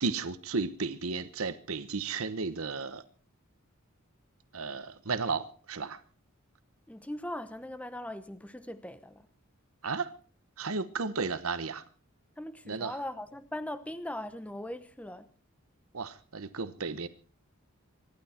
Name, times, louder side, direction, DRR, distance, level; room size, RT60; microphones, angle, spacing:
voice 1, 0.0-3.0 4.5-6.0 9.8-10.1 10.6-11.9 12.6-13.0 15.9-17.1, right 4 dB, 75° right, 1.1 m, -34 dB
voice 2, 6.9-9.3 12.4-15.3, left 1 dB, 5° left, 0.9 m, -40 dB
25.0 x 11.5 x 4.4 m
head